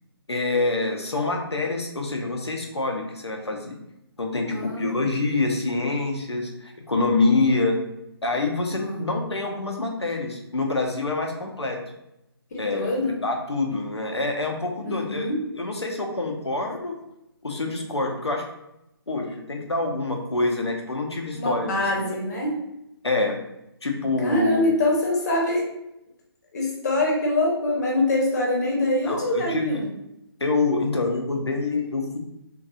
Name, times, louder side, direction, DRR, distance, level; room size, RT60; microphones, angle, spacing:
voice 1, 0.3-3.8 4.2-7.8 8.2-11.8 12.6-15.3 15.5-16.9 17.4-18.5 19.1-22.2 23.0-23.4 23.8-24.7 29.1-29.8 30.4-32.2, left 3 dB, 90° left, 2 dB, 0.6 m, -26 dB
voice 2, 4.4-5.0 8.7-9.0 12.5-13.1 14.8-15.4 21.3-22.5 24.2-25.7 26.5-29.9, left 1 dB, 40° left, -2 dB, 0.8 m, -24 dB
2.7 x 2.3 x 2.3 m, 0.84 s
figure-of-eight pair, 145°, 14 cm